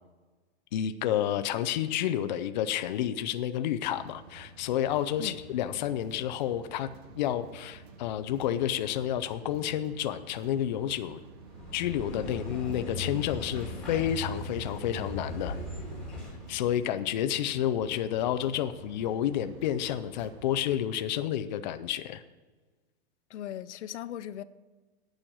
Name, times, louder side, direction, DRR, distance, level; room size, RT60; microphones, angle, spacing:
voice 1, 0.7-6.9 7.2-11.2 11.7-15.6 16.5-22.2, left 11 dB, 40° left, 0.5 m, -30 dB
sound 1, 3.9-20.8, right 4 dB, 20° right, 0.5 m, -51 dB
sound 2, 11.4-16.5, left 1 dB, ahead, 1.8 m, -38 dB
voice 2, 23.3-24.4, left 11 dB, 85° left, 0.6 m, -38 dB
9.0 x 6.4 x 8.6 m
supercardioid pair, 170°, 34 cm